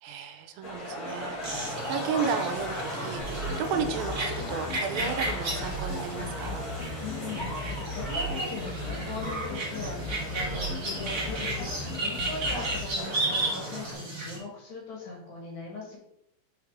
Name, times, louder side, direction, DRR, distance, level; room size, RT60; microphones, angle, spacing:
voice 1, 0.0-6.6, right 7 dB, 90° right, 8 dB, 2.4 m, -33 dB
sound 1, 0.6-13.9, left 1 dB, 35° left, 1.6 m, -38 dB
sound 2, 1.4-14.4, right 2 dB, 40° right, 1.6 m, -34 dB
sound 3, 3.2-12.8, left 3 dB, 90° left, 2.6 m, -38 dB
voice 2, 7.0-16.0, left 3 dB, 60° left, -3 dB, 2.6 m, -40 dB
5.5 x 4.8 x 3.5 m, 0.77 s
omnidirectional pair, 4.1 m